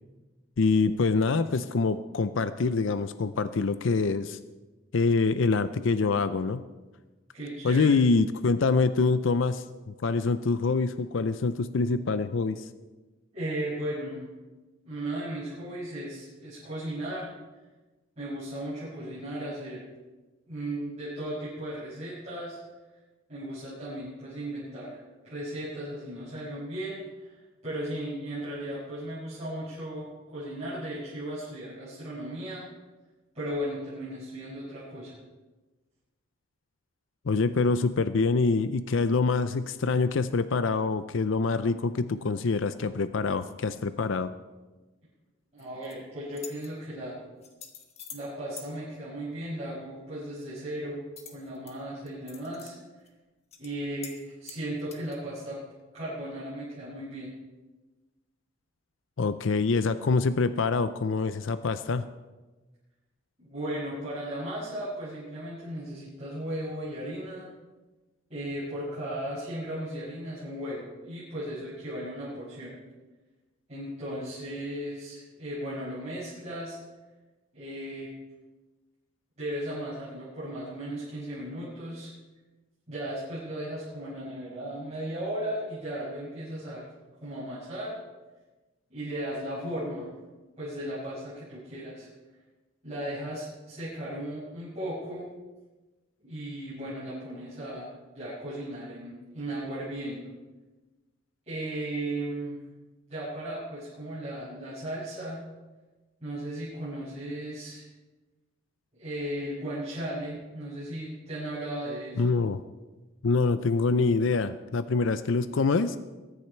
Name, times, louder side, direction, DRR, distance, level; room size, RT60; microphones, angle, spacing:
voice 1, 0.6-4.4 4.9-6.6 7.6-12.7 37.3-44.3 59.2-62.1 112.2-112.6 113.2-116.0, left 4 dB, 65° left, 12 dB, 0.5 m, -25 dB
voice 2, 7.3-7.9 13.3-14.2 14.8-17.3 18.2-19.8 20.5-22.6 23.3-27.4 27.6-32.6 33.3-35.1 45.5-47.1 48.1-51.0 51.3-52.7 53.6-55.6 55.9-57.3 63.4-67.5 68.3-72.8 73.7-76.8 77.5-78.1 79.4-82.1 82.9-86.9 87.2-88.0 88.9-90.1 90.6-92.1 92.8-95.3 96.2-97.9 98.1-100.3 101.5-102.6 103.1-105.4 106.2-107.8 109.0-112.2, right 1 dB, 30° right, -12 dB, 6.0 m, -36 dB
sound 1, 45.6-45.9 46.3-46.7 47.4-48.3 48.6-48.7 51.2-51.7 52.1-52.7 53.1-53.2 53.5-53.7 54.0-54.2 54.4-55.2, left 7 dB, 30° left, 1.4 m, -45 dB
22.5 x 9.9 x 4.5 m, 1.2 s
head